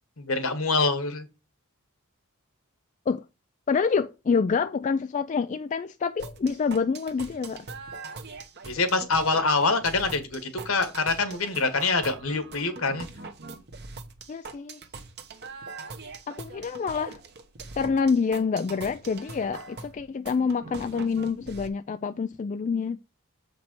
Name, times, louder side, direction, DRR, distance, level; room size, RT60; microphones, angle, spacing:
voice 1, 0.2-1.3 8.6-13.1, left 3 dB, 65° left, 1.5 m, -25 dB
voice 2, 3.7-7.7 14.3-14.8 16.3-17.2 17.8-23.0, left 5 dB, 35° left, 0.3 m, -27 dB
sound 1, 6.2-21.7, right 3 dB, 45° right, 1.1 m, -42 dB
7.6 x 5.2 x 4.5 m
head